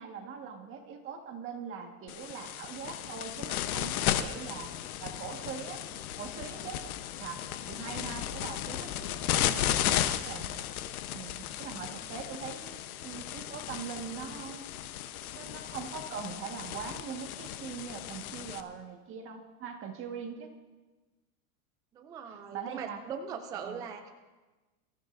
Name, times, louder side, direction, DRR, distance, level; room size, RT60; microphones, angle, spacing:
voice 1, 0.0-5.8 6.2-6.8 7.2-10.5 11.1-14.7 15.3-20.5 22.3-23.0 23.6-23.8, right 6 dB, 30° right, 3 dB, 1.6 m, -42 dB
sound 1, 2.1-18.6, left 11 dB, 75° left, 1.0 m, -35 dB
voice 2, 21.9-24.1, right 6 dB, 10° right, 6 dB, 0.3 m, -40 dB
24.0 x 14.0 x 2.6 m, 1.2 s
supercardioid pair, 150°, 44 cm